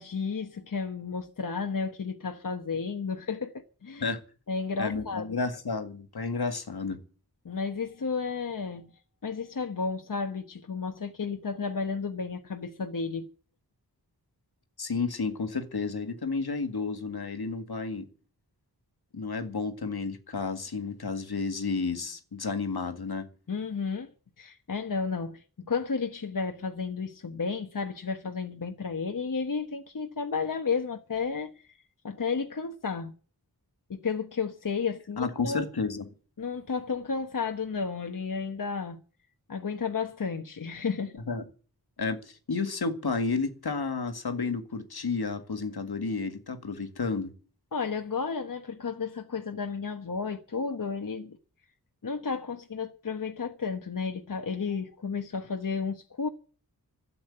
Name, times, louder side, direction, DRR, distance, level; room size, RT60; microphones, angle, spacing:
voice 1, 0.0-4.1 4.5-5.3 7.4-8.9 9.2-13.3 23.5-24.1 24.4-31.8 32.0-33.1 33.9-35.7 36.4-39.0 39.5-41.2 47.7-51.4 52.0-56.3, left 5 dB, 55° left, 1.2 m, -32 dB
voice 2, 4.8-7.0 14.8-18.1 19.1-23.2 35.2-36.1 41.3-41.4 42.0-47.3, left 4 dB, 75° left, 2.0 m, -31 dB
12.5 x 8.6 x 9.8 m
wide cardioid pair, 90°, 38 cm